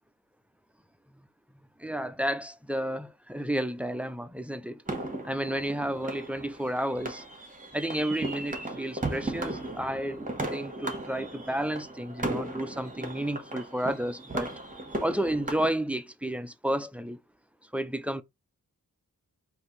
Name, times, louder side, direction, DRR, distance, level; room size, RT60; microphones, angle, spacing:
voice 1, 1.8-4.8 5.2-7.2 7.7-10.2 10.5-14.5 15.0-17.2 17.7-18.2, right 1 dB, 5° right, 0.4 m, -31 dB
sound 1, 4.9-15.7, right 2 dB, 25° right, 1.4 m, -36 dB
4.6 x 2.7 x 4.0 m
wide cardioid pair, 115°, 35 cm